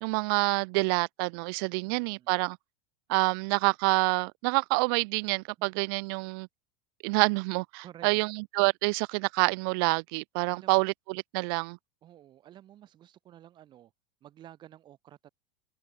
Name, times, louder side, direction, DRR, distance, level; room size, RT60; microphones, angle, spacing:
voice 1, 0.0-2.6 3.1-6.5 7.0-11.8, right 31 dB, 60° right, 0.4 m, -27 dB
voice 2, 1.8-2.3 5.6-5.7 7.8-8.2 10.5-10.8 12.0-13.9 14.2-15.3, right 12 dB, 35° right, 5.8 m, -52 dB
open air
supercardioid pair, 140°, 14 cm